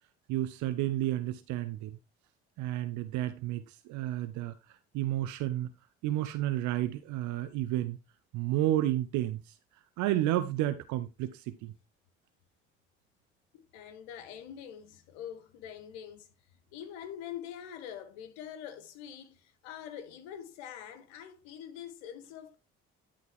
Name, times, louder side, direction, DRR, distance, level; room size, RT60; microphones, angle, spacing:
voice 1, 0.3-2.0 2.6-4.5 4.9-5.7 6.0-8.0 8.3-9.4 10.0-11.7, right 14 dB, 65° right, 0.9 m, -31 dB
voice 2, 13.7-16.3 16.7-22.6, left 9 dB, 75° left, 1.5 m, -44 dB
11.5 x 4.0 x 4.5 m
hypercardioid pair, 50°, 32 cm